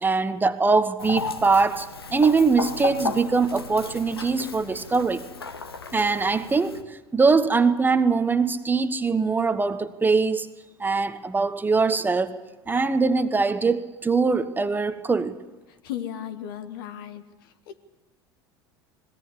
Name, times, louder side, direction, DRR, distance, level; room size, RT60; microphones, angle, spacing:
voice 1, 0.0-5.2 5.9-10.5 10.8-12.4 12.7-15.4, right 4 dB, 15° right, 1.1 m, -22 dB
Chicken rooster, 1.0-6.8, left 4 dB, 80° left, 1.3 m, -34 dB
voice 2, 15.8-17.8, left 10 dB, 65° left, 1.6 m, -36 dB
21.0 x 17.5 x 8.2 m
figure-of-eight pair, 75°, 13 cm